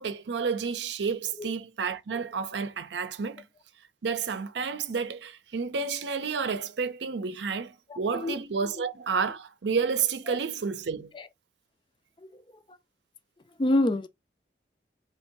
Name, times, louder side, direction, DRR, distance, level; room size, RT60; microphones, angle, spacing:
voice 1, 0.0-3.4 4.0-11.1, right 5 dB, 90° right, 0.6 m, -30 dB
voice 2, 7.9-8.3 10.3-10.4 11.1-11.3 12.2-12.4 13.6-14.1, left 1 dB, 30° left, 0.4 m, -27 dB
3.1 x 2.7 x 4.5 m
head